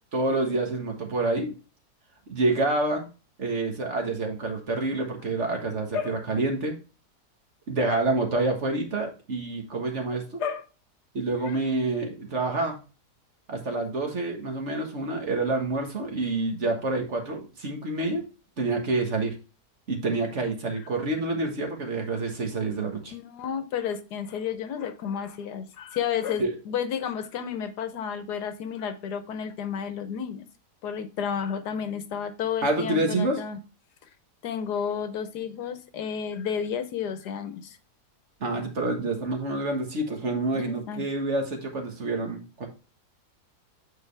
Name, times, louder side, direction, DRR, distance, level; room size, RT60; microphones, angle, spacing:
voice 1, 0.1-1.5 2.3-3.1 3.4-6.8 7.7-10.4 11.1-12.8 13.5-18.2 18.6-19.3 19.9-23.1 26.4-26.5 32.6-33.4 38.4-42.7, right 2 dB, 45° right, 2 dB, 1.7 m, -27 dB
voice 2, 23.1-30.4 30.8-33.6 34.4-37.8 40.5-41.0, left 7 dB, 80° left, 10 dB, 1.4 m, -31 dB
9.2 x 4.5 x 3.4 m, 0.33 s
omnidirectional pair, 1.7 m